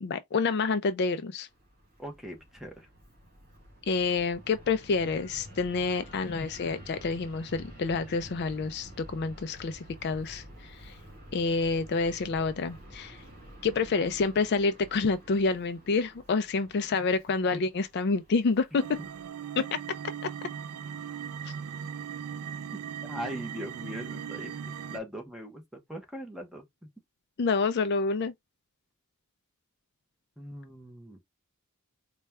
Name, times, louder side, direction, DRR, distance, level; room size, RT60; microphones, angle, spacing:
voice 1, 0.0-1.5 3.9-10.9 11.3-13.2 13.6-18.8 19.6-19.7 20.2-20.3 21.5-21.6 27.4-28.3, left 4 dB, 50° left, 0.4 m, -28 dB
Fixed-wing aircraft airplane, 1.5-19.3, equal, 40° right, 2.5 m, -50 dB
voice 2, 2.0-2.9 17.5-17.6 19.0-19.1 23.0-26.9 30.4-31.2, equal, ahead, 0.8 m, -41 dB
sound 1, 18.8-25.0, right 8 dB, 85° right, 0.4 m, -38 dB
4.2 x 2.3 x 3.3 m
head